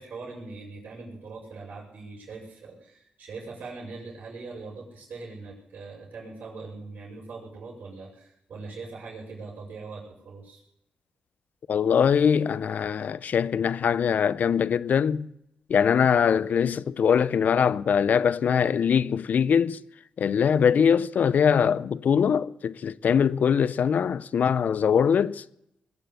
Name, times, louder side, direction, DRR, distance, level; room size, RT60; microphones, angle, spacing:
voice 1, 0.0-10.6, right 3 dB, 70° right, 6.1 m, -41 dB
voice 2, 11.7-15.3 15.7-19.8 20.2-25.4, left 7 dB, 65° left, 0.6 m, -22 dB
21.5 x 7.7 x 8.2 m
cardioid pair, 65°, 3 cm